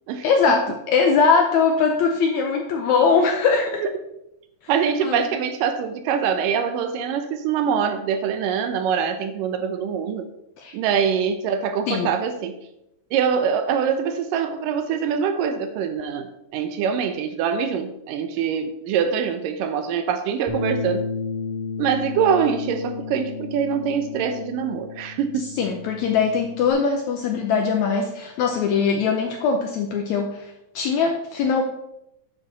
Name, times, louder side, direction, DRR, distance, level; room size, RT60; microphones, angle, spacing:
voice 1, 0.2-3.8 5.0-5.3 10.6-10.7 11.9-12.1 25.6-31.6, left 5 dB, 80° left, 3 dB, 1.7 m, -21 dB
voice 2, 4.7-10.3 10.7-12.6 13.1-21.0 21.8-25.5, right 7 dB, 75° right, 9 dB, 2.3 m, -24 dB
Bass guitar, 20.5-26.7, left 4 dB, 25° right, 0.6 m, -32 dB
9.7 x 6.7 x 4.1 m, 0.85 s
omnidirectional pair, 4.0 m